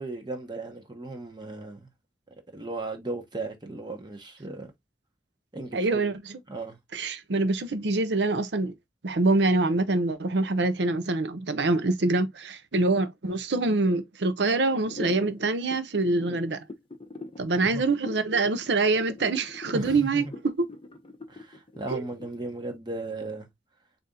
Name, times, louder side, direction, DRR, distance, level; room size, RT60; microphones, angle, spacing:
voice 1, 0.0-1.9 2.5-4.7 5.5-6.1 6.5-6.8 17.6-17.9 19.7-20.3 21.3-23.5, right 2 dB, 25° right, 1.0 m, -36 dB
voice 2, 5.7-6.4 6.9-8.7 9.0-16.6 17.4-20.7 21.9-22.0, right 3 dB, 80° right, 0.7 m, -25 dB
sound 1, 14.8-22.7, left 3 dB, 30° left, 0.7 m, -41 dB
4.1 x 2.7 x 3.7 m
head